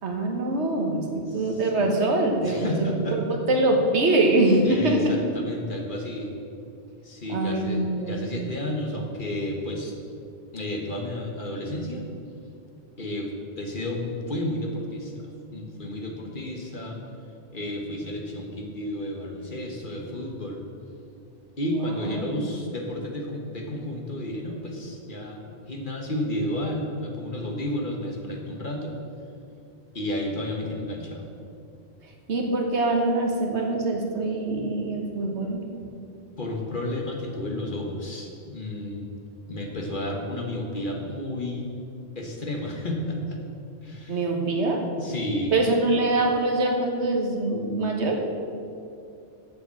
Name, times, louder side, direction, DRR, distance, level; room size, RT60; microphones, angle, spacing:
voice 1, 0.0-5.2 7.3-8.3 21.9-22.5 32.3-35.6 44.1-44.9 45.5-48.2, right 2 dB, 70° right, 2 dB, 1.5 m, -24 dB
voice 2, 1.3-1.9 2.4-3.2 4.6-6.3 7.0-9.9 10.5-12.0 13.0-17.0 17.5-20.6 21.6-28.9 29.9-31.2 36.4-39.1 39.5-41.7 42.1-43.4 43.8-44.3 45.0-45.5, left 1 dB, 45° left, 1 dB, 1.4 m, -32 dB
7.8 x 6.9 x 7.5 m, 2.5 s
omnidirectional pair, 1.2 m